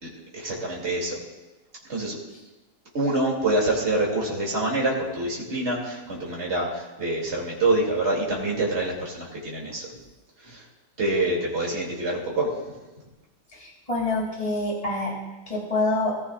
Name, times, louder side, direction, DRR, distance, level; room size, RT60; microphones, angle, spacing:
voice 1, 0.0-1.2 1.9-2.2 2.9-9.9 10.4-10.7 11.0-12.5, right 2 dB, 40° right, -3 dB, 3.2 m, -26 dB
voice 2, 13.5-15.1 15.5-16.2, left 2 dB, 20° left, -2 dB, 3.1 m, -26 dB
20.0 x 14.5 x 2.6 m, 1.1 s
omnidirectional pair, 1.8 m